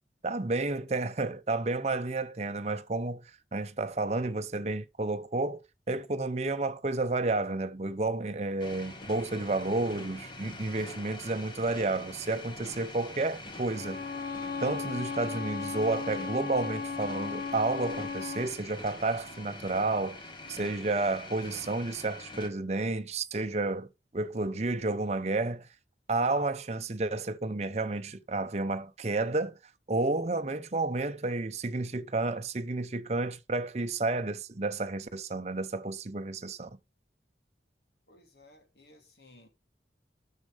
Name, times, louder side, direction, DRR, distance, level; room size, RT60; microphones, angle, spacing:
voice 1, 0.2-3.2 3.5-5.6 5.9-14.0 14.6-20.2 20.5-25.7 26.1-29.6 29.9-36.8, right 2 dB, 40° right, 0.7 m, -31 dB
sound 1, 8.6-22.5, left 2 dB, 25° left, 1.5 m, -45 dB
Bowed string instrument, 13.7-18.6, left 5 dB, 55° left, 1.4 m, -36 dB
voice 2, 38.1-39.5, left 2 dB, 70° left, 2.7 m, -57 dB
11.0 x 6.5 x 3.3 m
head